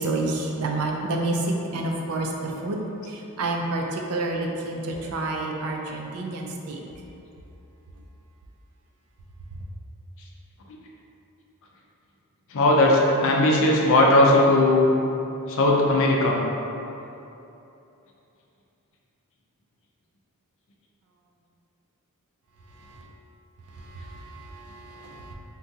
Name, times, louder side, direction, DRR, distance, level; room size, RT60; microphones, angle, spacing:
voice 1, 0.0-6.8 22.7-23.0 23.7-25.3, right 2 dB, 75° right, 1 dB, 0.4 m, -29 dB
voice 2, 12.5-14.9 15.5-16.4, left 1 dB, 60° left, -1 dB, 0.4 m, -18 dB
3.7 x 2.3 x 2.7 m, 2.9 s
head